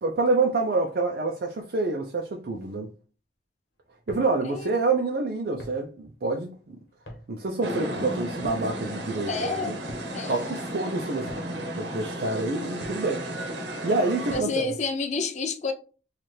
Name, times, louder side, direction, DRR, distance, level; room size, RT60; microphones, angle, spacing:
voice 1, 0.0-2.9 4.1-6.8 7.3-9.8 10.3-13.2 13.8-14.7, right 3 dB, 55° right, 0.5 m, -27 dB
sound 1, 3.9-14.7, equal, 65° left, 1.3 m, -47 dB
sound 2, 7.6-14.4, right 1 dB, 70° right, 0.9 m, -33 dB
voice 2, 9.3-9.8 10.1-10.6 14.3-15.7, left 4 dB, 40° left, 0.4 m, -29 dB
4.2 x 2.4 x 3.2 m
head